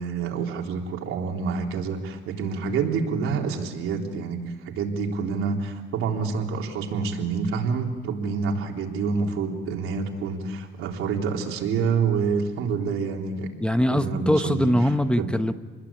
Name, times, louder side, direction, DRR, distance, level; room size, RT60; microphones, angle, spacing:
voice 1, 0.0-13.5 13.9-14.7 15.2-15.3, right 5 dB, 85° right, 1 dB, 3.7 m, -27 dB
voice 2, 13.6-15.5, equal, 5° left, 9 dB, 0.9 m, -22 dB
28.0 x 21.0 x 8.7 m, 1.5 s
cardioid pair, 130°, 21 cm